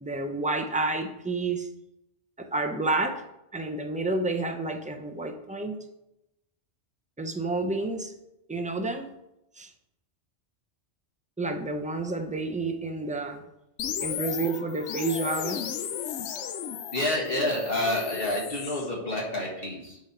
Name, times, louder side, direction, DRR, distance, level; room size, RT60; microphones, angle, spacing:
voice 1, 0.0-1.7 2.4-3.2 3.5-5.8 7.2-8.1 8.5-9.1 9.6-9.7 11.4-13.4 14.0-15.6, right 3 dB, 10° right, 4 dB, 0.4 m, -30 dB
sound 1, 13.8-18.9, left 9 dB, 75° left, 0.9 m, -35 dB
voice 2, 16.9-20.0, left 1 dB, 50° left, -3 dB, 1.8 m, -28 dB
10.5 x 3.9 x 4.3 m, 0.87 s
omnidirectional pair, 1.2 m